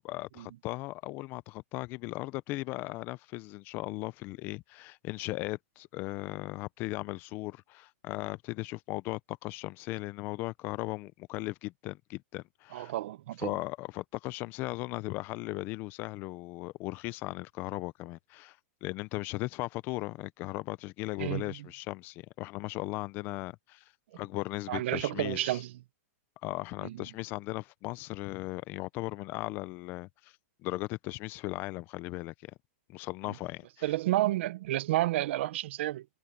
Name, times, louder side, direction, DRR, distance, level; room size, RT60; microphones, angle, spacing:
voice 1, 0.0-12.9 13.4-23.8 24.2-25.6 26.4-30.3 30.6-32.5 32.9-33.7, left 20 dB, 25° left, 0.4 m, -37 dB
voice 2, 12.7-13.6 21.2-21.6 24.7-25.8 26.8-27.0 33.8-36.1, right 15 dB, 55° right, 0.7 m, -31 dB
supercardioid pair, 165°, 8 cm